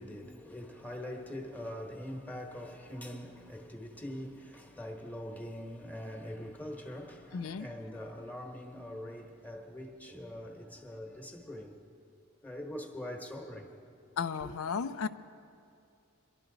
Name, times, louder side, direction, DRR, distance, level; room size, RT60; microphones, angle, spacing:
voice 1, 0.0-11.8 12.4-13.7 14.4-14.5, left 1 dB, 10° left, 1.1 m, -43 dB
voice 2, 7.3-7.7 14.2-15.1, left 6 dB, 80° left, 0.4 m, -34 dB
22.5 x 12.0 x 3.9 m
head